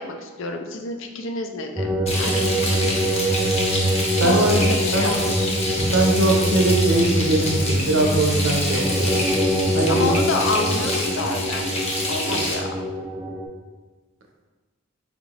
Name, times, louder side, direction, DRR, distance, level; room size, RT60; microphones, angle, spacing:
voice 1, 0.0-3.1 4.1-5.5 9.9-12.7, left 3 dB, 65° left, 4 dB, 0.5 m, -29 dB
sound 1, 1.8-13.5, equal, 10° right, 0.4 m, -24 dB
Frying (food), 2.1-12.5, left 1 dB, 30° left, 0.8 m, -27 dB
voice 2, 4.2-4.6 4.9-5.3 5.9-9.3 9.7-10.1, right 2 dB, 65° right, 1 dB, 0.6 m, -21 dB
4.9 x 2.4 x 3.2 m, 1.3 s
head